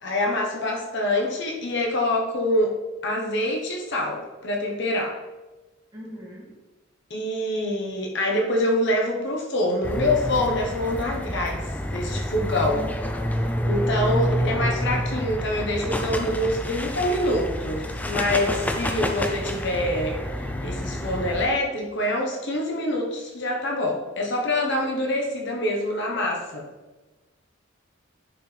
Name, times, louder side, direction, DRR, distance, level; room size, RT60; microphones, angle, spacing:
voice 1, 0.0-2.7 3.0-5.2 7.1-11.6 11.9-12.9 13.6-20.2 20.6-26.6, left 1 dB, 60° left, 0 dB, 1.1 m, -25 dB
voice 2, 5.9-6.5 13.6-13.9, equal, 20° right, -6 dB, 2.4 m, -41 dB
sound 1, 9.8-21.5, equal, 10° left, 0.4 m, -28 dB
10.0 x 4.8 x 3.3 m, 1.2 s
head